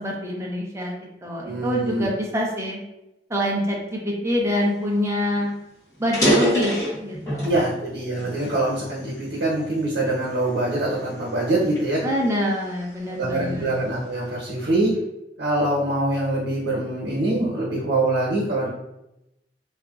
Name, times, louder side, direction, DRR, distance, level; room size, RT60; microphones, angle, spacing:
voice 1, 0.0-2.8 3.3-5.5 6.0-7.5 12.0-13.7, equal, 15° right, -2 dB, 0.6 m, -25 dB
voice 2, 1.4-2.1 7.4-12.0 13.2-14.9 15.4-18.7, right 2 dB, 80° right, -4 dB, 0.9 m, -24 dB
sound 1, 4.9-5.0 5.3-5.5 6.0-7.6 8.1-9.4 10.0-10.3 10.9-12.9, equal, 20° left, 1.1 m, -25 dB
2.8 x 2.3 x 2.4 m, 0.88 s
head